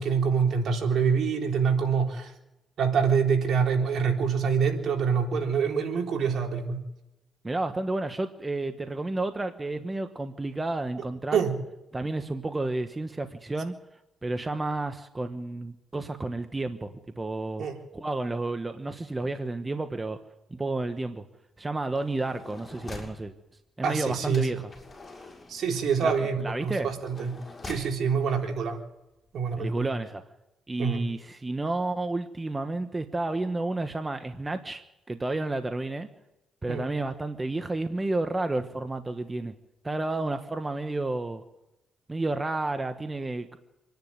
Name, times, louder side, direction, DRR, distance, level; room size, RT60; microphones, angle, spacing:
voice 1, 0.0-2.3 2.8-6.8 11.3-11.5 17.6-17.8 23.8-24.5 25.5-27.4 27.6-28.8 29.3-29.9 30.8-31.0 36.7-36.9, right 6 dB, 60° right, 2 dB, 3.8 m, -26 dB
voice 2, 7.4-11.5 11.9-13.7 14.2-17.7 17.9-20.2 20.5-21.2 21.6-23.3 23.8-24.7 26.0-26.1 26.4-26.9 29.5-30.2 30.7-36.1 36.6-39.5 39.8-41.4 42.1-43.6, right 2 dB, 20° right, 8 dB, 1.2 m, -31 dB
sound 1, 21.9-23.2 24.3-28.0 28.8-28.9 29.1-29.4, left 2 dB, 25° left, 6.9 m, -45 dB
26.5 x 10.5 x 9.6 m, 0.93 s
cardioid pair, 90°, 0 cm